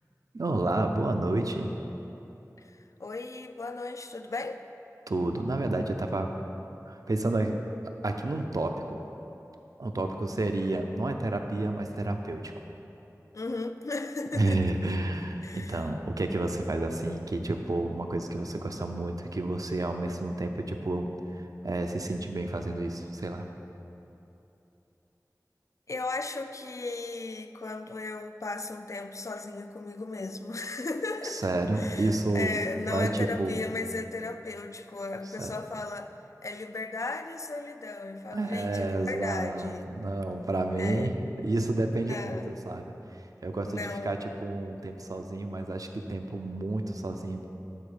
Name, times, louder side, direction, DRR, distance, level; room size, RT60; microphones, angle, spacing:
voice 1, 0.3-1.7 5.1-6.3 6.9-7.6 8.0-9.0 9.8-12.5 14.3-23.5 31.2-32.6 32.9-33.7 35.4-35.5 38.3-42.9 43.4-47.4, right 2 dB, 65° right, 4 dB, 0.5 m, -30 dB
voice 2, 2.6-4.6 13.3-14.7 15.4-15.8 25.9-31.5 31.7-36.1 36.4-39.9 40.8-41.1 42.1-42.4 43.7-44.2, left 3 dB, 55° left, 9 dB, 0.3 m, -36 dB
9.1 x 4.2 x 5.0 m, 3.0 s
wide cardioid pair, 40°, 6 cm